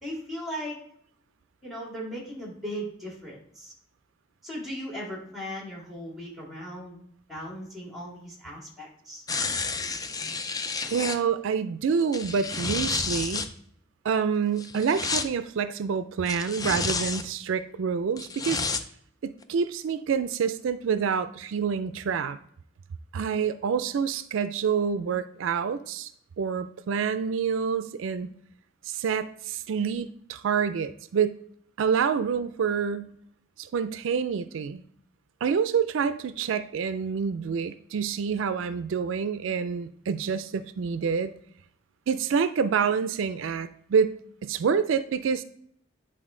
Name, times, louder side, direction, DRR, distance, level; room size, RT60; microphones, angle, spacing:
voice 1, 0.0-0.8 1.6-3.7 4.4-7.0 7.3-9.2, equal, ahead, -2 dB, 2.4 m, -37 dB
sound 1, 9.3-11.2 12.0-13.5 14.6-15.3 16.3-17.3 18.2-18.8 19.4-19.5, left 4 dB, 20° left, 0.4 m, -30 dB
voice 2, 10.9-13.5 14.0-18.6 19.2-22.4 23.1-26.1 26.4-28.3 28.8-31.4 31.8-33.1 33.6-34.8 35.4-41.3 42.1-44.1 44.4-45.4, right 6 dB, 80° right, 12 dB, 0.4 m, -27 dB
9.9 x 3.9 x 3.7 m, 0.65 s
head